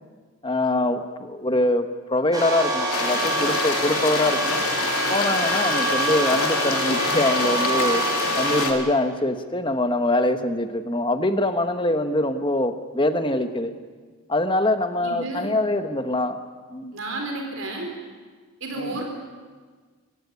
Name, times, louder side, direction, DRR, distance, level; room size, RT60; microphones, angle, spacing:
voice 1, 0.4-4.6 5.1-8.0 8.4-13.7 14.3-16.4 16.7-16.9 18.7-19.0, left 1 dB, 20° left, 9 dB, 1.2 m, -24 dB
sound 1, 2.3-8.6, right 1 dB, 15° right, 4.8 m, -26 dB
sound 2, 2.9-8.7, left 4 dB, 85° left, 3.0 m, -27 dB
voice 2, 15.0-15.5 16.9-17.9 18.6-19.0, right 2 dB, 60° right, 2 dB, 4.3 m, -31 dB
25.5 x 15.5 x 9.6 m, 1.5 s
head